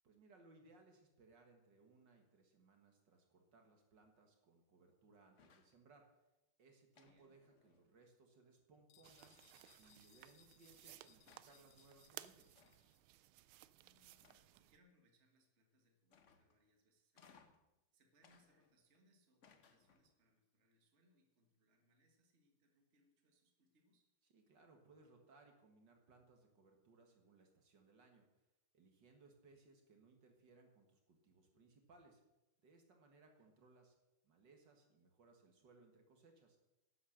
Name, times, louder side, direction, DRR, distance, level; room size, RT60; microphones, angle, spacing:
voice 1, 0.0-6.1 6.6-9.4 9.8-12.6 24.3-28.4 28.7-32.2 32.6-34.0 34.2-36.6, right 3 dB, 60° right, 3 dB, 2.2 m, -67 dB
sound 1, 5.3-5.8 6.9-8.1 9.2-9.7 10.7-10.8 11.3-11.7 12.5-13.0 14.2-14.8 16.1-16.6 17.1-17.7 18.2-19.0 19.4-20.2, left 6 dB, 50° left, 0.9 m, -69 dB
sound 2, 8.9-13.0, left 14 dB, 85° left, 1.4 m, -71 dB
sound 3, 9.0-14.8, right 14 dB, 85° right, 1.4 m, -59 dB
voice 2, 13.8-14.2 14.5-17.5 17.9-24.1 33.4-33.5, equal, 35° right, 3 dB, 1.8 m, -76 dB
12.0 x 8.8 x 6.5 m, 0.97 s
omnidirectional pair, 2.3 m